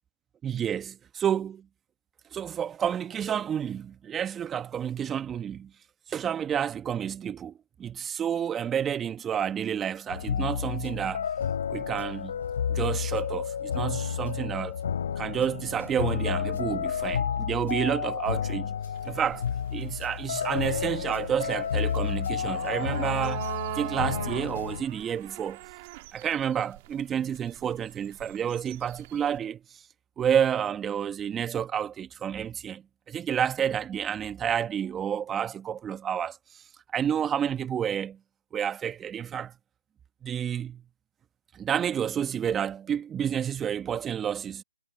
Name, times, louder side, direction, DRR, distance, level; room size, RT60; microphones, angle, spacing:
voice 1, 0.4-1.6 2.3-5.7 6.1-7.5 7.8-11.3 11.7-12.3 12.7-14.7 15.2-18.7 19.0-19.5 19.7-23.5 23.7-25.6 26.1-29.8 30.2-36.6 36.9-38.2 38.5-39.5 40.2-40.8 41.5-44.6, right 8 dB, 10° right, 1.5 m, -30 dB
sound 1, 10.1-24.8, left 7 dB, 50° left, 3.7 m, -31 dB
sound 2, 19.0-29.4, right 20 dB, 30° right, 1.6 m, -42 dB
figure-of-eight pair, 150°, 0 cm